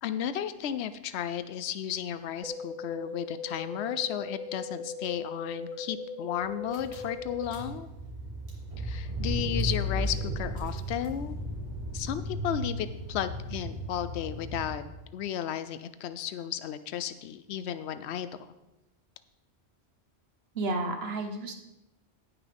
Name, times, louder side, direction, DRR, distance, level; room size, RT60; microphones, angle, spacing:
voice 1, 0.0-7.9 8.8-11.3 11.9-14.8 15.1-18.5, left 10 dB, 85° left, 12 dB, 0.9 m, -34 dB
sound 1, 2.4-7.4, left 3 dB, ahead, 0.4 m, -39 dB
Car / Engine, 6.7-15.1, equal, 30° right, 2.9 m, -35 dB
voice 2, 20.5-21.5, right 2 dB, 70° right, 5 dB, 1.3 m, -31 dB
17.5 x 5.9 x 3.5 m, 0.95 s
omnidirectional pair, 1.1 m